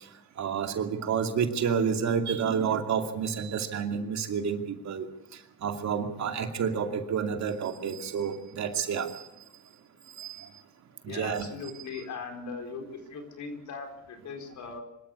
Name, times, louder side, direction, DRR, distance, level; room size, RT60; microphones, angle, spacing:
voice 1, 0.4-5.1 5.6-9.3 10.2-10.5 11.0-11.5, right 7 dB, 65° right, 5 dB, 2.5 m, -29 dB
voice 2, 11.1-14.8, left 4 dB, 70° left, 4 dB, 4.5 m, -39 dB
24.5 x 13.5 x 8.4 m, 0.90 s
cardioid pair, 90°, 30 cm